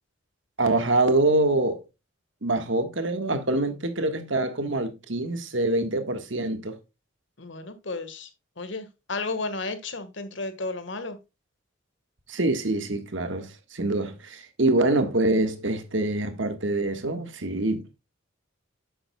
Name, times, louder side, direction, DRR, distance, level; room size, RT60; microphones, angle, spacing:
voice 1, 0.6-1.8 2.4-6.8 12.3-17.9, right 2 dB, 70° right, 1.5 m, -25 dB
voice 2, 7.4-8.3 8.6-11.2, left 3 dB, 65° left, 1.6 m, -33 dB
10.5 x 7.8 x 2.3 m
head